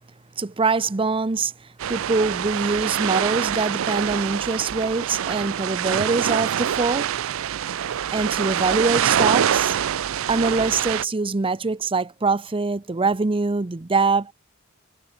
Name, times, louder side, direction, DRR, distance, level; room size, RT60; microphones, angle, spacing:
voice 1, 0.4-1.5 1.9-7.1 8.1-9.8 10.3-14.3, right 4 dB, 25° right, 0.6 m, -23 dB
sound 1, 1.8-11.0, right 9 dB, 70° right, 0.4 m, -25 dB
head